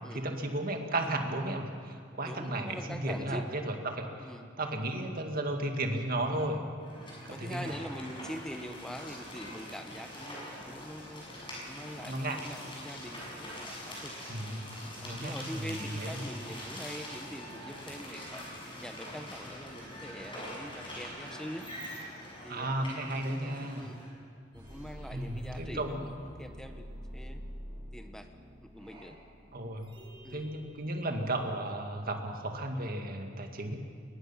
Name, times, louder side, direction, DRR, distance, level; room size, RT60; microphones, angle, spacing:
voice 1, 0.1-4.3 4.6-6.6 7.2-7.7 12.1-12.5 14.3-14.7 15.0-16.3 22.5-23.9 25.1-26.2 29.5-29.9 30.3-33.8, right 1 dB, 50° right, 4 dB, 2.0 m, -34 dB
voice 2, 2.2-3.5 4.2-4.5 7.3-11.3 11.6-14.1 15.0-18.4 18.8-21.7 22.4-24.0 24.5-26.9 27.1-27.4 27.9-28.3 28.7-29.2 30.2-30.4, equal, 5° left, 6 dB, 1.2 m, -44 dB
sound 1, 6.8-24.1, left 1 dB, 25° left, 7.3 m, -44 dB
sound 2, 24.5-31.1, equal, 25° right, 5.7 m, -47 dB
23.5 x 20.0 x 5.8 m, 2.1 s
head